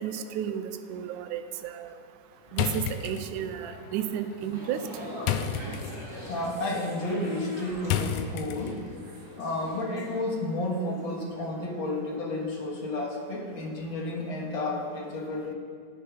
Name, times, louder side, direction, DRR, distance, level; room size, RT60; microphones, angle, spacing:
voice 1, 0.0-2.0 2.5-4.8, right 10 dB, 85° right, 9 dB, 2.1 m, -33 dB
sound 1, 2.5-9.0, left 8 dB, 90° left, 2.2 m, -34 dB
sound 2, 4.4-10.6 10.9-11.1, equal, 15° right, 3.5 m, -42 dB
voice 2, 6.2-8.8 9.4-15.5, left 2 dB, 45° left, -1 dB, 1.9 m, -31 dB
10.0 x 10.0 x 5.8 m, 2.2 s
omnidirectional pair, 3.6 m